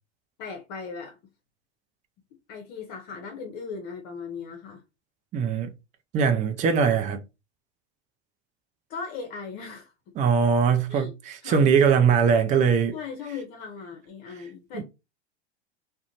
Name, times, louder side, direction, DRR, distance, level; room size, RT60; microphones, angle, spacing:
voice 1, 0.4-1.2 2.5-4.8 8.9-9.9 10.9-11.1 11.4-11.7 12.9-14.8, left 5 dB, 50° left, 0.8 m, -38 dB
voice 2, 5.3-5.7 6.1-7.2 10.2-12.9 14.7-14.8, right 6 dB, 20° right, 0.4 m, -21 dB
2.4 x 2.2 x 2.9 m
hypercardioid pair, 100°, 34 cm